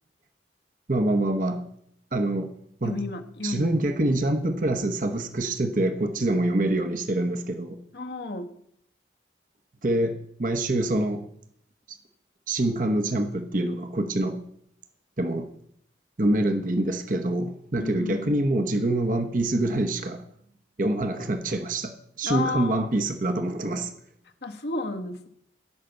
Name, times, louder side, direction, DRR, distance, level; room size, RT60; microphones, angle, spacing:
voice 1, 0.9-1.7 2.1-2.5 2.8-3.0 3.4-7.8 9.8-11.2 11.9-12.0 12.5-14.4 15.2-15.5 16.2-20.2 20.8-23.9, right 1 dB, 50° right, 6 dB, 1.0 m, -25 dB
voice 2, 2.8-3.7 7.9-8.5 17.8-18.3 22.2-22.9 24.4-25.3, left 3 dB, 70° left, 4 dB, 1.5 m, -32 dB
15.5 x 5.9 x 7.9 m, 0.71 s
head